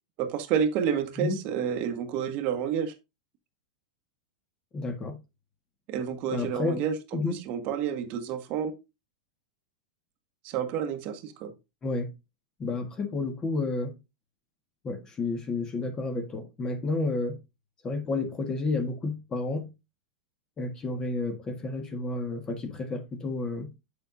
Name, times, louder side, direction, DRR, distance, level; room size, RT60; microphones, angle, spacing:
voice 1, 0.2-2.9 5.9-6.9 7.3-8.7 10.4-11.5, right 8 dB, 45° right, 1.3 m, -29 dB
voice 2, 4.7-5.2 6.3-6.8 7.1-7.4 11.8-12.1 12.6-14.0 14.8-17.4 17.8-19.7 20.6-23.7, left 3 dB, 20° left, 1.5 m, -31 dB
7.9 x 6.8 x 2.6 m
supercardioid pair, 135°, 4 cm